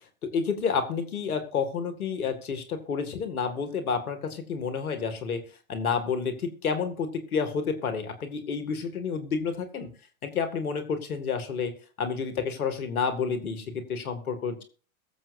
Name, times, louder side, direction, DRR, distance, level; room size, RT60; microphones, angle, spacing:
voice 1, 0.2-5.4 5.7-9.9 10.2-11.7 12.0-14.6, left 5 dB, 85° left, 8 dB, 2.2 m, -30 dB
22.0 x 7.7 x 2.6 m, 0.40 s
hypercardioid pair, 100°, 42 cm